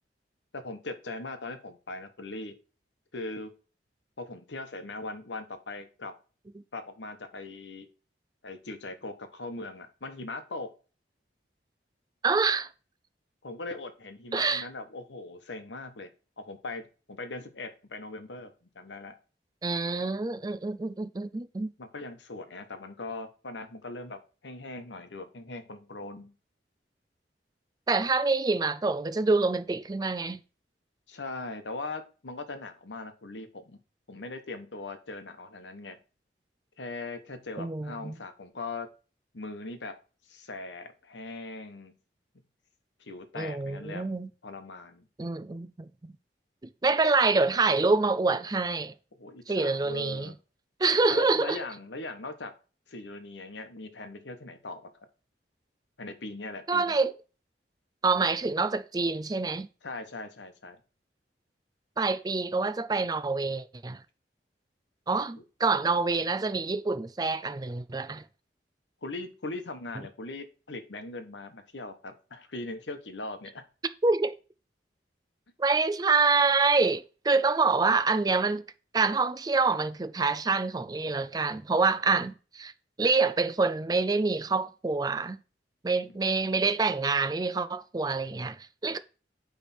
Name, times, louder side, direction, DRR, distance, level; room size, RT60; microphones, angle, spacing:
voice 1, 0.5-2.5 3.1-3.5 4.2-6.1 6.7-7.9 8.4-10.7 13.4-16.1 16.4-19.1 21.8-26.3 31.1-33.8 34.1-36.0 36.8-38.9 39.3-40.0 40.3-41.9 43.0-44.1 44.4-45.1 49.2-50.4 51.1-52.5 52.9-54.9 56.0-57.0 59.8-60.8 65.4-65.5 69.0-73.6 86.1-86.2, left 2 dB, 90° left, 1.1 m, -40 dB
voice 2, 12.2-12.7 14.3-14.7 19.6-21.7 27.9-30.4 37.6-38.1 43.4-44.3 45.2-46.2 46.8-48.9 49.5-50.3 50.8-51.6 56.7-57.1 58.0-59.7 62.0-64.0 65.1-68.2 74.0-74.3 75.6-78.6 78.9-82.7 83.0-85.4 85.8-89.0, right 4 dB, 20° right, 0.4 m, -26 dB
9.0 x 3.5 x 4.3 m
head